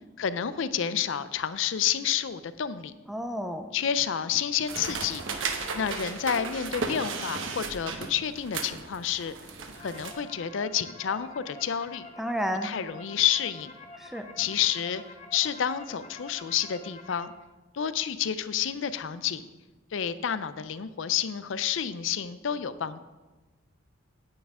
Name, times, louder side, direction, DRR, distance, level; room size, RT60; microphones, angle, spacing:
voice 1, 0.2-2.9 3.7-5.2 5.7-9.3 9.8-12.1 12.6-13.7 14.4-15.0 15.3-17.3 17.7-19.5 19.9-23.0, left 9 dB, 65° left, 14 dB, 0.5 m, -29 dB
voice 2, 3.1-3.7 12.2-12.7 14.0-14.3, equal, ahead, 6 dB, 0.4 m, -31 dB
sound 1, 4.7-10.1, right 4 dB, 70° right, 1.0 m, -35 dB
sound 2, 9.4-17.3, left 3 dB, 30° left, 1.0 m, -47 dB
9.5 x 9.4 x 3.6 m, 1.2 s
head